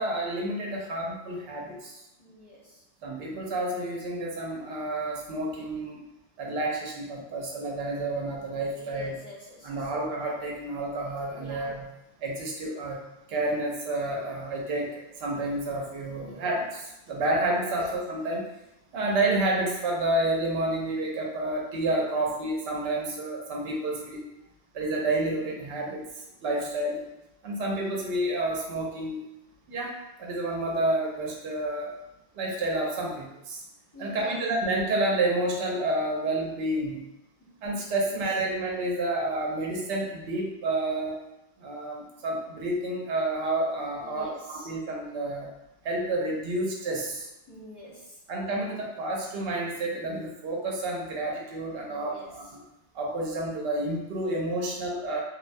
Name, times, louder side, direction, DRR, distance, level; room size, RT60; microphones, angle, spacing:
voice 1, 0.0-2.0 3.0-6.0 6.4-9.2 9.6-11.9 12.2-13.0 13.3-18.5 18.9-24.2 24.7-27.0 27.4-29.2 29.7-31.9 32.3-33.6 34.0-37.0 37.6-41.2 41.6-45.5 45.8-47.3 48.3-52.6 52.9-55.2, right 2 dB, 65° right, -1 dB, 0.8 m, -30 dB
voice 2, 2.2-2.8 8.8-9.9 11.3-11.8 16.2-16.4 21.8-22.2 33.9-34.4 37.4-37.5 38.0-38.1 44.0-44.7 47.5-48.2 51.9-52.4, equal, 35° left, -9 dB, 0.4 m, -47 dB
2.4 x 2.1 x 2.5 m, 0.90 s
omnidirectional pair, 1.2 m